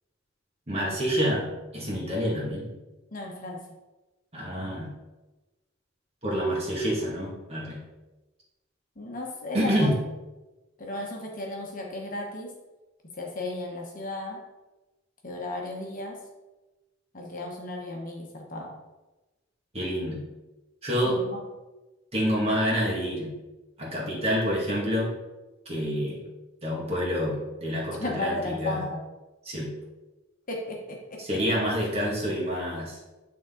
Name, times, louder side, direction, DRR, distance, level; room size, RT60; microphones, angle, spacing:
voice 1, 0.7-2.7 4.3-4.9 6.2-7.8 9.5-10.0 19.7-20.2 20.8-21.2 22.1-23.3 23.8-25.1 25.7-26.2 26.6-28.8 29.5-29.7 31.2-33.0, equal, 30° right, -4 dB, 1.9 m, -27 dB
voice 2, 3.1-3.6 9.0-9.9 10.8-12.5 13.0-14.4 15.2-16.2 17.1-18.8 21.0-21.4 28.0-29.0 30.5-31.4, left 1 dB, 40° left, 0 dB, 1.1 m, -35 dB
9.3 x 3.8 x 3.8 m, 1.1 s
head